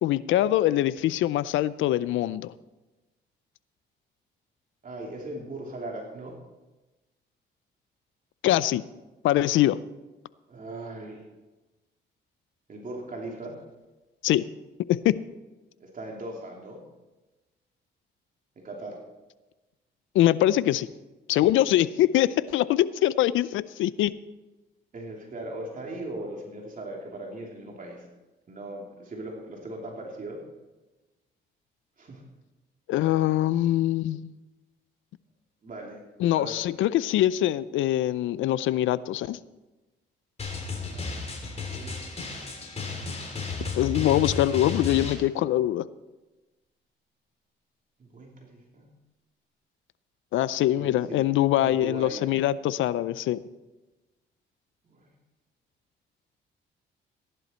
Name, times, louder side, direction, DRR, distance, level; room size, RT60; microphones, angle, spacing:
voice 1, 0.0-2.5 8.4-8.8 9.2-9.8 14.2-14.4 14.9-15.2 20.1-20.9 21.3-24.2 32.9-34.3 36.2-39.4 43.6-45.9 50.3-53.4, left 13 dB, 80° left, 17 dB, 0.5 m, -23 dB
voice 2, 4.8-6.4 10.5-11.3 12.7-13.6 15.8-16.8 18.6-19.0 24.9-28.1 28.5-30.4 32.0-32.2 35.6-36.0 36.4-36.6 40.8-41.3 41.7-42.0 42.3-43.1 48.0-48.9 50.8-51.3 51.6-52.2 52.5-52.8 54.9-55.1, right 2 dB, 45° right, 0 dB, 2.9 m, -39 dB
Drum, 40.4-45.1, left 3 dB, 35° left, 3.2 m, -33 dB
15.0 x 11.0 x 4.4 m, 1.1 s
cardioid pair, 90°, 20 cm